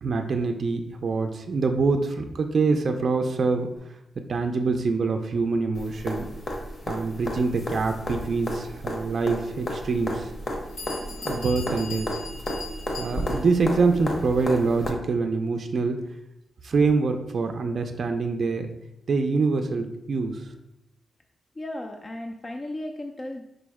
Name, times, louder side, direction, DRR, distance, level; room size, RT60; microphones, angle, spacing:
voice 1, 0.0-3.7 4.3-6.3 6.9-10.3 11.2-12.1 13.0-16.0 16.6-18.7 19.1-20.5, right 4 dB, 50° right, 5 dB, 0.4 m, -25 dB
sound 1, 5.7-14.9 16.9-17.0, left 1 dB, 45° left, 0.8 m, -33 dB
Bell, 10.4-10.5 10.8-13.6, left 4 dB, 80° left, 1.2 m, -40 dB
voice 2, 21.6-23.4, left 1 dB, 25° left, 2 dB, 0.3 m, -35 dB
5.0 x 2.1 x 4.6 m, 0.86 s
wide cardioid pair, 140°, 0 cm